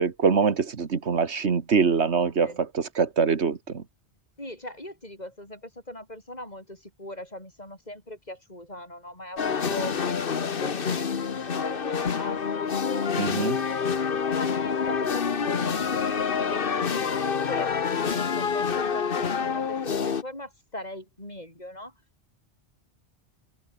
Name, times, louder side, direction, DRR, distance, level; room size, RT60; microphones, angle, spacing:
voice 1, 0.0-3.8 13.2-13.6, right 5 dB, 80° right, 1.8 m, -24 dB
voice 2, 4.4-11.1 11.5-13.9 14.3-17.7 18.0-21.9, left 1 dB, 40° left, 7.7 m, -40 dB
sound 1, 9.4-20.2, left 6 dB, 55° left, 1.3 m, -27 dB
open air
omnidirectional pair, 1.1 m